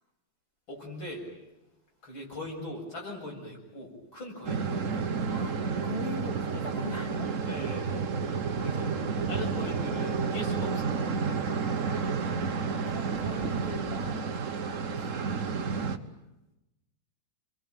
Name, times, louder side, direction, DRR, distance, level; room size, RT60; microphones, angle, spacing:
voice 1, 0.7-1.2 2.0-5.1 7.5-7.9 8.6-8.9 9.3-11.0 15.9-16.0, left 1 dB, 90° left, -1 dB, 8.1 m, -40 dB
sound 1, 4.4-16.0, right 5 dB, 45° right, 1.5 m, -31 dB
voice 2, 5.1-7.3 8.6-9.7 11.9-14.4 14.8-16.0, left 2 dB, 30° left, -1 dB, 2.8 m, -42 dB
28.5 x 23.0 x 9.2 m, 0.97 s
omnidirectional pair, 2.1 m